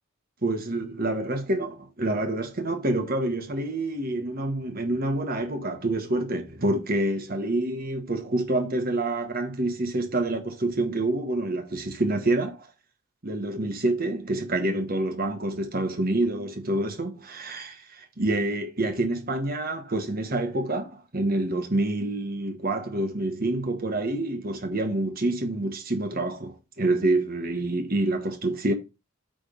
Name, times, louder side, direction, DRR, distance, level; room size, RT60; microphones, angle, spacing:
voice 1, 0.4-12.7 13.2-28.7, right 2 dB, 45° right, 1.4 m, -27 dB
8.9 x 3.5 x 5.3 m
head